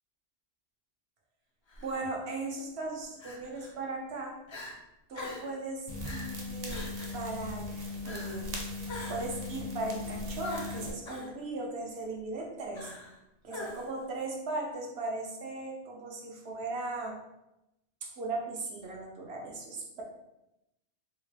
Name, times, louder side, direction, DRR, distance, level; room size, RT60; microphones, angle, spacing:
Crying sobbing, 1.7-1.9 3.2-3.7 4.1-4.2 4.5-4.7 5.1-5.5 6.0-6.3 6.7-7.2 8.0-8.4 8.9-9.4 10.4-11.3 12.7-13.2 13.5-14.0, left 2 dB, 40° left, 0.4 m, -43 dB
voice 1, 1.8-4.4 5.1-6.9 7.1-12.9 13.4-17.2 18.0-20.0, right 2 dB, 75° right, -1 dB, 1.0 m, -38 dB
sound 1, 5.9-10.9, left 2 dB, 40° right, 0.6 m, -38 dB
3.9 x 2.1 x 3.2 m, 0.90 s
omnidirectional pair, 1.1 m